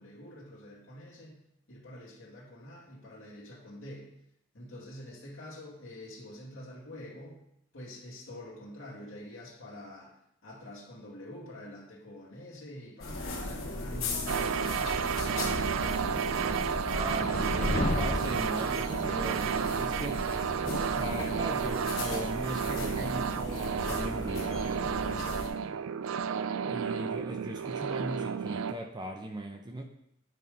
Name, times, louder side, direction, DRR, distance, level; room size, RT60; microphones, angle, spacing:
voice 1, 0.0-1.4 1.7-4.1 4.5-7.4 7.7-10.1 10.4-14.9 25.1-25.4, left 1 dB, 70° left, -6 dB, 2.2 m, -47 dB
sound 1, 13.0-25.5, left 2 dB, 90° left, 1.9 m, -37 dB
voice 2, 13.6-14.6 16.9-20.2 21.0-24.6 26.7-29.8, right 1 dB, 20° right, 3 dB, 0.6 m, -39 dB
sound 2, 14.3-28.7, right 7 dB, 70° right, 0.3 m, -32 dB
sound 3, 14.9-18.5, left 2 dB, 35° left, 0.7 m, -34 dB
9.5 x 3.6 x 5.2 m, 0.76 s
head